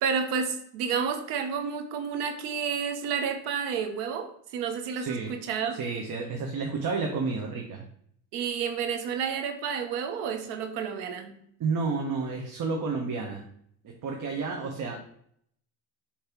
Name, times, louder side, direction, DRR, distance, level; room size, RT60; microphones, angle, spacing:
voice 1, 0.0-5.8 8.3-11.4, right 6 dB, 80° right, 7 dB, 1.0 m, -30 dB
voice 2, 5.0-5.3 5.8-7.9 11.6-13.4 13.8-15.0, right 4 dB, 50° right, 1 dB, 1.2 m, -31 dB
6.6 x 3.3 x 4.5 m, 0.67 s
supercardioid pair, 75°, 42 cm